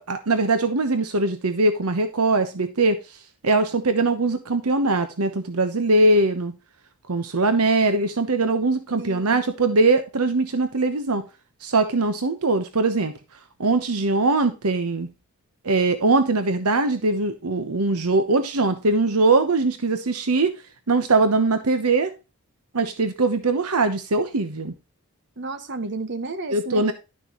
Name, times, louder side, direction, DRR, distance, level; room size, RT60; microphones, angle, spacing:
voice 1, 0.1-3.0 3.4-6.5 7.1-11.2 11.6-13.1 13.6-15.1 15.6-20.5 20.9-22.1 22.7-24.7 26.5-26.9, right 3 dB, 80° right, 1.0 m, -21 dB
voice 2, 9.0-9.4 25.4-26.8, right 3 dB, 55° right, 1.4 m, -32 dB
11.5 x 6.5 x 3.0 m
head